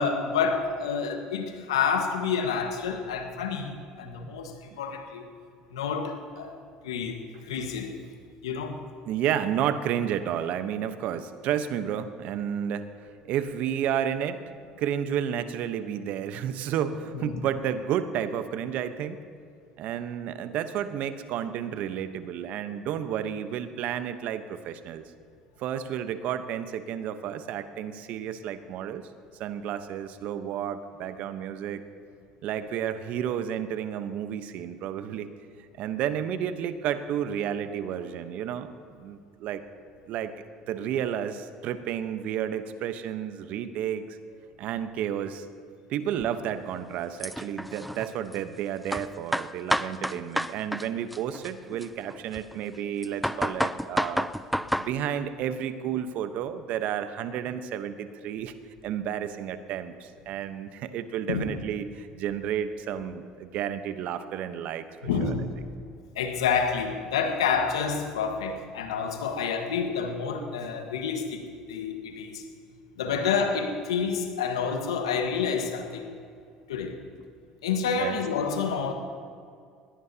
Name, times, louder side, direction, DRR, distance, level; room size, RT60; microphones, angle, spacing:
voice 1, 0.0-5.3 5.7-6.5 6.8-8.0 8.4-8.8 17.1-17.3 61.3-61.5 65.0-65.6 66.1-72.5 73.0-76.1 76.7-77.0 77.6-78.9, left 6 dB, 90° left, 4 dB, 1.5 m, -29 dB
voice 2, 9.1-12.9 13.2-14.4 14.8-19.2 19.8-25.0 25.6-29.1 29.3-31.8 32.4-35.3 35.6-38.7 39.0-39.6 40.1-40.3 40.7-44.2 44.6-45.5 45.9-54.3 54.8-58.5 58.8-64.9 65.3-65.4 73.0-73.3 78.0-78.2, right 9 dB, 60° right, 10 dB, 1.0 m, -31 dB
sound 1, 46.2-46.3 47.2-48.4 48.9-50.9 51.1-52.6 53.0-54.9, equal, ahead, 0.5 m, -29 dB
21.0 x 17.5 x 2.9 m, 2.2 s
hypercardioid pair, 70°, 3 cm